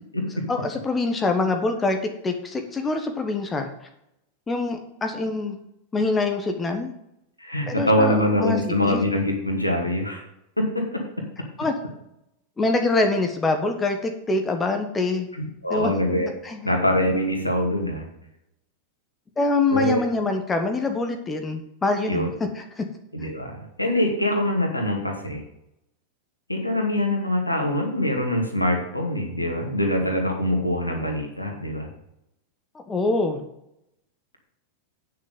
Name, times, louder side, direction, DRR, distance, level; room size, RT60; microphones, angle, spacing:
voice 1, 0.5-2.0 2.2-3.7 4.5-5.6 5.9-6.9 7.7-8.6 8.8-9.0 11.6-11.7 12.6-15.3 15.7-15.9 16.4-16.7 19.4-22.8 32.9-33.4, left 3 dB, 15° left, 5 dB, 1.2 m, -24 dB
voice 2, 7.4-10.2 10.6-11.0 15.3-16.3 16.6-18.0 19.7-20.0 22.1-22.3 23.1-25.4 26.5-31.9, left 1 dB, 85° left, 1 dB, 2.2 m, -24 dB
9.2 x 6.5 x 5.3 m, 0.82 s
figure-of-eight pair, 90°, 0 cm